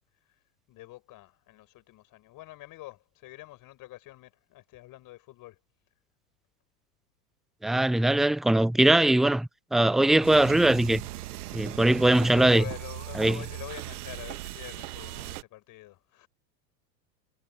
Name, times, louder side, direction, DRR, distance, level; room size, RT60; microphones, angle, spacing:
voice 1, 0.7-5.6 12.2-16.3, left 17 dB, 40° left, 5.9 m, -45 dB
voice 2, 7.6-11.0 11.5-12.6 13.2-13.4, right 1 dB, ahead, 0.6 m, -21 dB
sound 1, 10.2-15.4, right 16 dB, 65° right, 1.7 m, -39 dB
hypercardioid pair, 90°, 49 cm